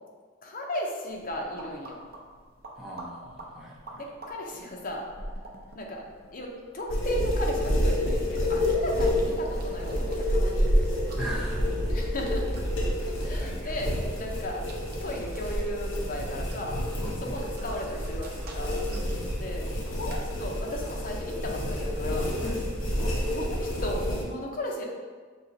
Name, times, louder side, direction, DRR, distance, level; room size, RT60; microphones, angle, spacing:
voice 1, 0.4-2.0 3.9-5.1 5.7-6.0 6.3-10.9 11.9-12.5 13.1-14.6 15.0-16.8 17.2-18.8 19.4-22.3 23.0-24.8, left 1 dB, 45° left, 0 dB, 0.7 m, -36 dB
sound 1, 1.1-20.3, equal, 50° right, 0.6 m, -36 dB
voice 2, 2.7-4.0 11.2-11.8 13.3-13.8 17.0-17.3 18.9-19.5 22.4-22.7, equal, 5° right, -5 dB, 0.7 m, -39 dB
sound 2, 6.9-24.2, left 1 dB, 80° left, 1.0 m, -29 dB
5.4 x 2.9 x 2.7 m, 1.5 s
head